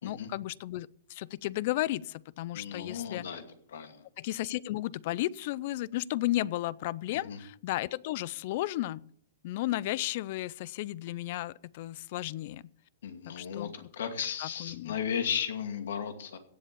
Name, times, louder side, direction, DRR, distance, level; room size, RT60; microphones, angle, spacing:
voice 1, 0.0-3.3 4.2-9.1 9.4-12.6 13.3-13.9 14.4-15.0, left 16 dB, 45° left, 23 dB, 0.4 m, -34 dB
voice 2, 2.5-3.4 3.7-4.0 7.2-7.4 13.0-16.4, left 7 dB, 75° left, 7 dB, 2.4 m, -35 dB
16.5 x 7.6 x 6.8 m, 0.64 s
hypercardioid pair, 160°, 0 cm